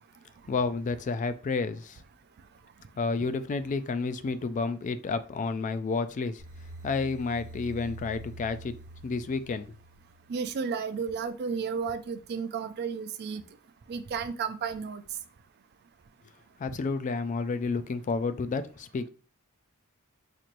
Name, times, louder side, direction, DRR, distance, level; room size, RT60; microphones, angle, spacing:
voice 1, 0.5-2.0 3.0-6.4 6.8-8.7 9.0-9.6 16.6-19.1, left 4 dB, 35° left, 0.3 m, -30 dB
sound 1, 6.4-10.5, right 2 dB, 75° right, 1.1 m, -46 dB
voice 2, 10.3-13.4 13.9-15.0, right 5 dB, 50° right, 0.4 m, -33 dB
4.2 x 3.1 x 2.5 m
head